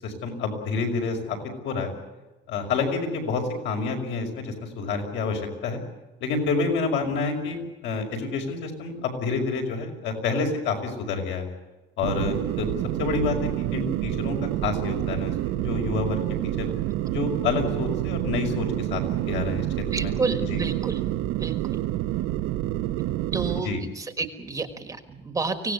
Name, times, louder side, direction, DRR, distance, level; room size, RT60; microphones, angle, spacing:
voice 1, 0.0-1.4 1.6-1.9 2.5-5.8 6.2-11.5 12.0-12.7 13.0-16.7 17.1-20.1 20.4-20.6 23.5-23.8, left 4 dB, 60° left, 3 dB, 5.7 m, -28 dB
sound 1, 12.0-23.6, right 14 dB, 80° right, 1.0 m, -28 dB
voice 2, 19.9-21.0 21.4-21.8 23.3-25.7, right 3 dB, 15° right, 8 dB, 1.5 m, -30 dB
25.0 x 17.5 x 8.4 m, 1.1 s
cardioid pair, 175°, 21 cm